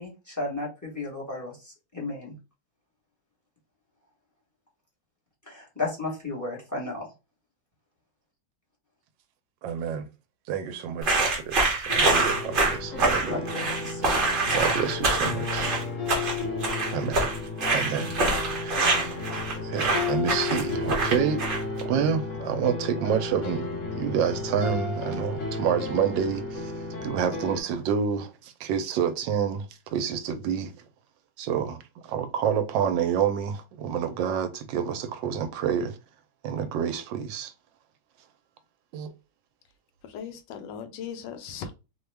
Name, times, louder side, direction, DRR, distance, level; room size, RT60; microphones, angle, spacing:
voice 1, 0.0-2.4 5.4-7.1 13.3-14.1, left 2 dB, 15° left, 0.8 m, -34 dB
voice 2, 9.6-10.1 10.5-13.4 14.5-15.8 16.2-16.3 16.9-17.3 17.7-19.0 19.6-21.4 21.8-26.7 27.0-30.7 31.4-36.0 36.4-37.5 38.9-39.1, right 7 dB, 85° right, 1.3 m, -28 dB
sound 1, 11.0-21.8, right 3 dB, 45° right, 0.7 m, -25 dB
sound 2, 11.9-27.6, left 3 dB, 50° left, 1.0 m, -33 dB
voice 3, 40.1-41.8, left 7 dB, 85° left, 1.2 m, -38 dB
3.0 x 2.2 x 3.2 m
omnidirectional pair, 1.9 m